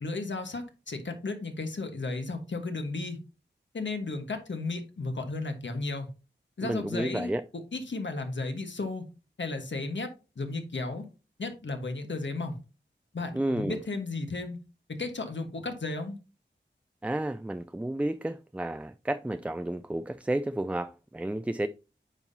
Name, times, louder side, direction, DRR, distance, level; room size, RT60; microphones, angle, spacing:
voice 1, 0.0-3.2 3.7-6.1 6.6-7.3 7.7-9.1 9.4-10.1 10.4-11.1 11.4-12.6 13.1-14.6 14.9-16.2, left 3 dB, 75° left, 1.4 m, -34 dB
voice 2, 6.6-7.4 13.3-13.8 17.0-21.7, right 1 dB, 5° right, 0.3 m, -31 dB
8.9 x 5.6 x 2.8 m
wide cardioid pair, 65°, 20 cm